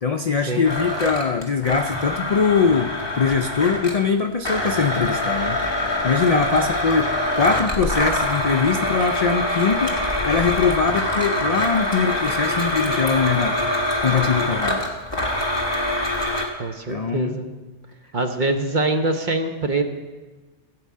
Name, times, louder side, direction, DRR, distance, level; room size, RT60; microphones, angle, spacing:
voice 1, 0.0-5.6 6.0-10.0 10.3-13.6 14.0-14.9 16.9-17.4, left 5 dB, 60° left, 6 dB, 0.4 m, -22 dB
Domestic sounds home sounds, 0.6-4.0 4.4-16.5, left 1 dB, 20° left, 1.6 m, -24 dB
voice 2, 16.6-17.5 18.1-19.8, right 2 dB, 40° right, 5 dB, 1.0 m, -24 dB
15.5 x 5.4 x 8.4 m, 1.3 s
omnidirectional pair, 1.3 m